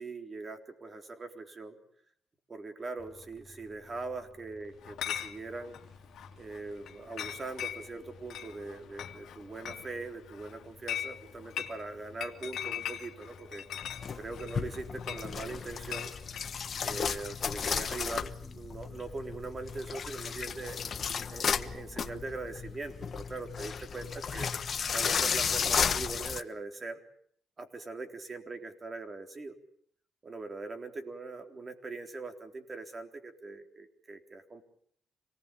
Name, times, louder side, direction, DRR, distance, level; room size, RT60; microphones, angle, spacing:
voice 1, 0.0-1.8 2.5-5.8 6.4-13.6 14.1-16.1 16.8-20.8 21.3-24.5 24.9-27.0 27.6-29.6 30.2-34.6, right 3 dB, 30° right, 5 dB, 3.9 m, -41 dB
sound 1, 3.0-19.8, left 1 dB, ahead, 2.9 m, -57 dB
Chatter / Chink clink, 4.8-16.5, left 10 dB, 75° left, 2.6 m, -41 dB
sound 2, 13.8-26.4, left 6 dB, 50° left, 1.2 m, -34 dB
27.0 x 19.0 x 8.6 m, 0.65 s
cardioid pair, 90°, 0 cm